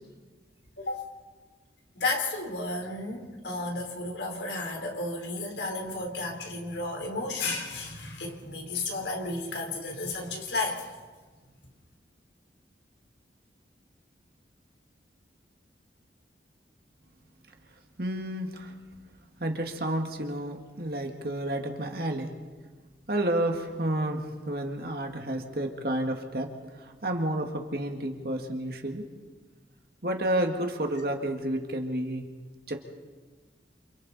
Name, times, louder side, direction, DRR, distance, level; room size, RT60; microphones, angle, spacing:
voice 1, 1.9-10.9, left 2 dB, 75° left, 1 dB, 3.8 m, -33 dB
voice 2, 18.0-18.7 19.4-22.3 23.1-24.2 24.5-26.5 26.8-29.0 30.0-32.3 32.7-32.8, right 1 dB, 55° right, 3 dB, 1.9 m, -30 dB
28.5 x 27.0 x 4.2 m, 1.4 s
head